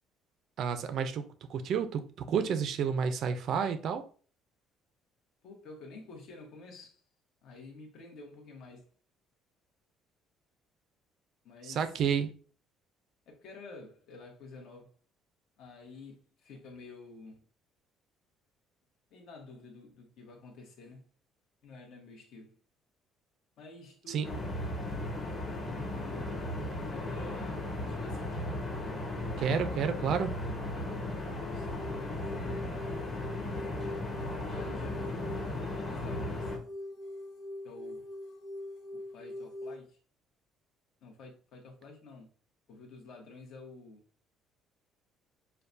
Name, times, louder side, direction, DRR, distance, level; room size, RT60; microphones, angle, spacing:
voice 1, 0.6-2.0 2.3-4.0 11.6-12.3 24.1-24.3 29.4-30.3, right 7 dB, 50° right, 0.5 m, -30 dB
voice 2, 5.4-7.0 7.4-8.9 11.4-11.9 13.3-14.9 15.6-17.4 19.1-21.1 21.6-22.6 23.6-24.5 25.7-26.5 26.9-28.4 31.4-32.5 34.5-36.5 37.6-38.1 38.9-40.0 41.0-42.3 42.7-44.0, left 3 dB, 55° left, 1.2 m, -50 dB
sound 1, 24.2-36.6, left 2 dB, 25° left, 1.0 m, -36 dB
sound 2, 31.6-39.8, left 1 dB, 80° left, 0.9 m, -43 dB
6.6 x 2.3 x 2.6 m
cardioid pair, 160°, 0 cm